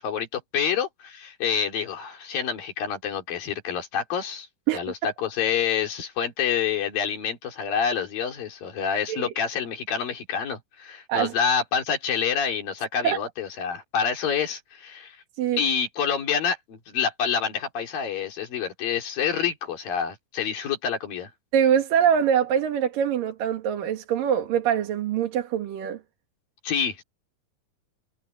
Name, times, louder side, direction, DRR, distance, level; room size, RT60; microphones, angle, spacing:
voice 1, 0.0-4.5 4.7-15.2 15.6-21.3 26.6-27.0, left 7 dB, 90° left, 5.2 m, -27 dB
voice 2, 21.5-26.0, right 9 dB, 75° right, 3.5 m, -23 dB
omnidirectional pair, 3.9 m